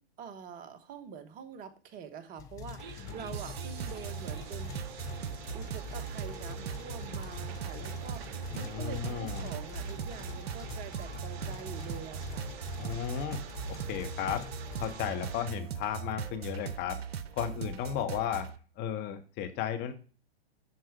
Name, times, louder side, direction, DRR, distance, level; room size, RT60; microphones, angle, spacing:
voice 1, 0.0-4.8 5.5-12.5, right 7 dB, 25° right, 9 dB, 1.2 m, -45 dB
sound 1, 2.4-15.6, left 8 dB, 10° left, 0.3 m, -45 dB
sound 2, 2.8-15.5, right 7 dB, 45° right, 1.3 m, -48 dB
sound 3, 3.3-18.6, right 7 dB, 70° right, 0.8 m, -40 dB
voice 2, 8.5-9.5 12.8-13.4 13.7-14.4 14.8-17.0 17.4-18.5 18.8-19.9, left 9 dB, 30° left, 7 dB, 1.5 m, -34 dB
10.5 x 4.7 x 4.7 m, 0.38 s
hypercardioid pair, 115°, 32 cm